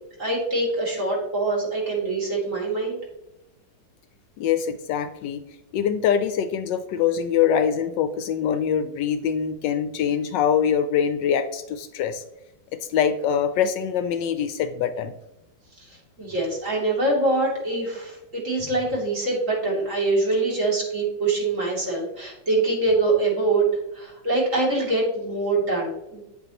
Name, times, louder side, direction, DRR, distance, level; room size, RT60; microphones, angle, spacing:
voice 1, 0.2-3.0 15.8-26.2, right 2 dB, 40° right, -4 dB, 3.2 m, -24 dB
voice 2, 4.4-5.4 5.7-12.2 12.9-15.2, left 8 dB, 75° left, 10 dB, 1.2 m, -24 dB
9.1 x 7.9 x 2.9 m, 0.91 s
omnidirectional pair, 2.1 m